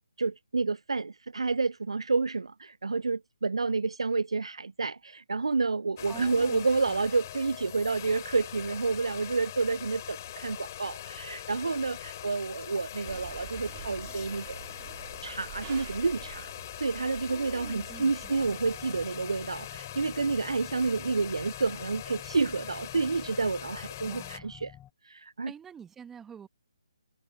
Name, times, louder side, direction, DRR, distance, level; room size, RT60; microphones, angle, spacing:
voice 1, 0.2-14.6 15.2-16.5 16.8-24.7 25.0-25.5, right 4 dB, 75° right, 0.4 m, -29 dB
sound 1, 6.0-24.4, left 12 dB, 35° left, 3.1 m, -42 dB
voice 2, 6.1-7.0 17.3-18.3 24.0-24.6 25.5-26.5, right 7 dB, 10° right, 1.3 m, -47 dB
sound 2, 13.1-18.8, right 16 dB, 30° right, 2.6 m, -47 dB
sound 3, 18.3-24.9, left 11 dB, 10° left, 5.7 m, -51 dB
figure-of-eight pair, 145°, 3 cm